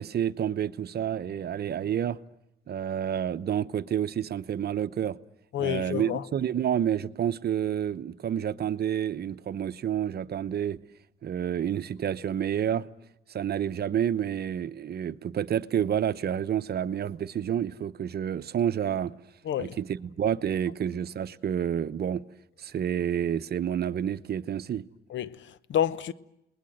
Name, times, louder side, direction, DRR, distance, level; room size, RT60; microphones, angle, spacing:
voice 1, 0.0-2.2 2.7-5.2 5.6-10.8 11.2-12.9 13.3-19.1 19.6-22.2 22.6-24.8, right 9 dB, 55° right, 0.9 m, -29 dB
voice 2, 5.5-6.2 19.4-19.8 25.1-26.1, left 10 dB, 70° left, 1.0 m, -29 dB
29.5 x 20.5 x 7.8 m
cardioid pair, 90°, 20 cm